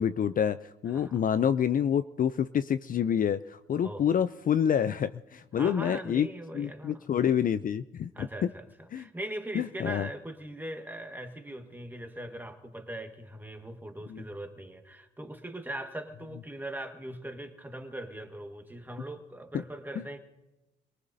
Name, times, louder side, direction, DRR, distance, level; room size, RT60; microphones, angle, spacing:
voice 1, 0.0-6.3 6.5-8.3 8.9-9.0 9.5-10.1 14.1-14.2, left 8 dB, 45° left, 13 dB, 0.4 m, -27 dB
voice 2, 0.9-1.2 3.8-4.1 5.6-7.1 8.1-20.2, right 1 dB, 10° right, 5 dB, 1.6 m, -40 dB
27.5 x 19.0 x 2.7 m, 1.0 s
cardioid pair, 90°, 20 cm